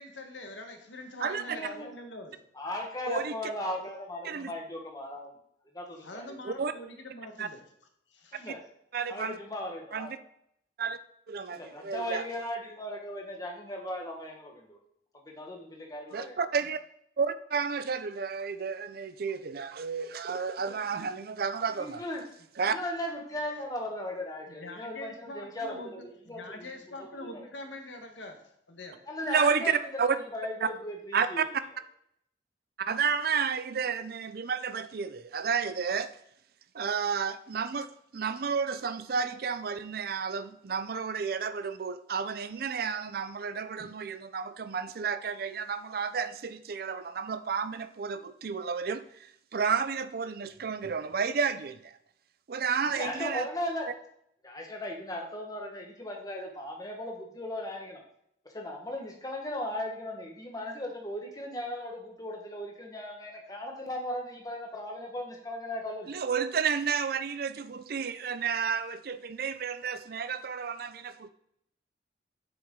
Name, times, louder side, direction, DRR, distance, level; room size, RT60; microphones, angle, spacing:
voice 1, 0.0-2.4 6.0-7.6 8.1-8.5 24.5-29.0, left 1 dB, 85° left, 5 dB, 1.2 m, -44 dB
voice 2, 1.5-1.9 2.5-5.3 5.7-6.4 8.3-8.6 9.1-10.1 11.5-14.8 15.2-16.4 21.7-22.2 22.6-25.8 26.3-26.7 29.1-29.8 30.2-31.4 52.9-53.9 54.4-58.0 58.5-66.1, left 1 dB, 20° left, 1 dB, 1.3 m, -37 dB
voice 3, 3.1-3.4 4.2-4.5 6.4-6.7 7.4-7.5 8.9-9.4 9.9-10.2 10.8-11.0 11.3-12.3 16.1-16.8 17.2-22.0 22.6-22.8 29.3-30.2 30.6-30.7 31.1-31.5 32.8-36.1 36.7-37.9 38.1-51.9 52.5-53.5 66.1-71.3, right 6 dB, 55° right, 12 dB, 0.4 m, -31 dB
7.3 x 6.0 x 3.7 m, 0.73 s
head